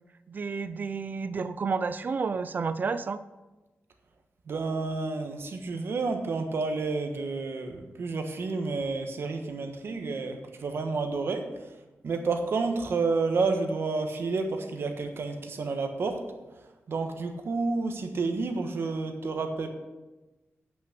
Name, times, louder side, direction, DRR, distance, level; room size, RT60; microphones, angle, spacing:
voice 1, 0.3-3.2, right 5 dB, 40° right, 13 dB, 0.4 m, -30 dB
voice 2, 4.5-11.5 12.0-16.2 16.9-19.7, right 3 dB, 60° right, 5 dB, 1.4 m, -30 dB
9.1 x 6.0 x 8.3 m, 1.1 s
wide cardioid pair, 170°, 5 cm